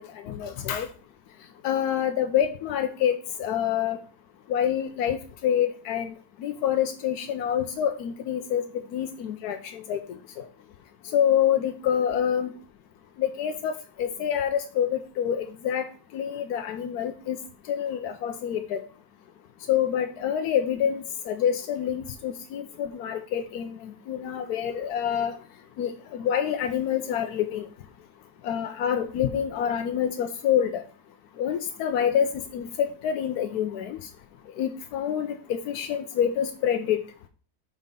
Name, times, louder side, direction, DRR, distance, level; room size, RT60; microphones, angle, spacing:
voice 1, 0.2-0.9 1.6-4.0 4.5-6.1 6.4-8.6 8.9-10.0 10.4-10.5 11.1-12.5 13.2-15.9 16.1-17.4 17.7-18.8 19.7-25.4 25.8-27.6 28.4-30.8 31.4-34.0 34.6-37.0, left 9 dB, 90° left, 6 dB, 1.2 m, -27 dB
5.6 x 4.9 x 5.3 m, 0.41 s
omnidirectional pair, 1.6 m